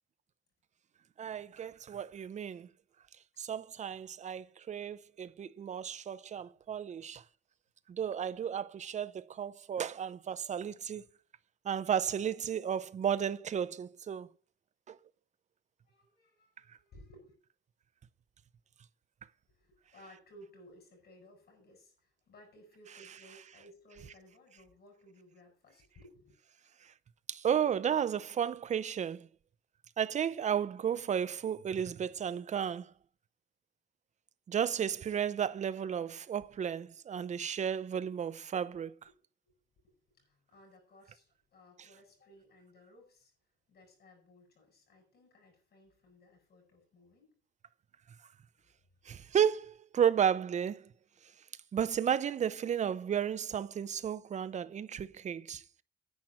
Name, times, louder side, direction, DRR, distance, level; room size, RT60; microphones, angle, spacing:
voice 1, 1.2-2.7 3.4-7.2 7.9-11.1 11.6-14.3 14.9-15.0 27.3-29.3 30.0-32.9 34.5-38.9 49.1-50.8 51.7-55.8, right 8 dB, 40° right, 0.6 m, -33 dB
voice 2, 15.9-17.3 19.5-26.3 39.0-39.1 39.4-43.3 43.7-47.3 48.8-49.0, left 1 dB, 60° left, 8.0 m, -59 dB
10.5 x 7.3 x 7.7 m
cardioid pair, 155°, 19 cm